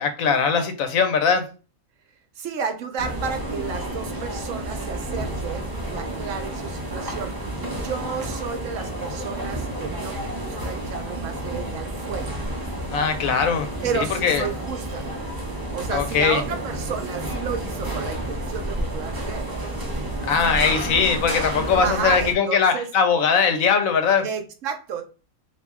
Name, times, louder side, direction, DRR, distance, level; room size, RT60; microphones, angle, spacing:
voice 1, 0.0-1.4 12.9-13.7 13.9-14.4 15.9-16.4 20.2-24.3, left 6 dB, 75° left, 7 dB, 1.1 m, -20 dB
voice 2, 2.4-12.3 13.8-15.1 15.7-19.5 21.5-22.9 24.2-25.0, right 6 dB, 70° right, 6 dB, 1.0 m, -32 dB
sound 1, 3.0-22.3, right 1 dB, 30° right, 0.4 m, -30 dB
2.9 x 2.7 x 3.5 m, 0.34 s
omnidirectional pair, 1.4 m